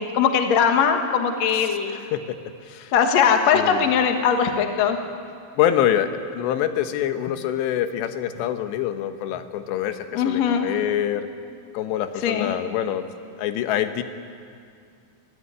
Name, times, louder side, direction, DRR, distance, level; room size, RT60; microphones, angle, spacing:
voice 1, 0.0-2.0 2.9-5.0 10.1-10.7 12.2-12.5, left 7 dB, 60° left, 5 dB, 1.9 m, -20 dB
voice 2, 1.9-2.4 2.7-2.9 3.5-3.9 5.6-11.3 11.7-13.1 13.4-14.0, left 11 dB, 75° left, 8 dB, 3.1 m, -25 dB
24.0 x 15.0 x 9.7 m, 2.4 s
omnidirectional pair, 5.3 m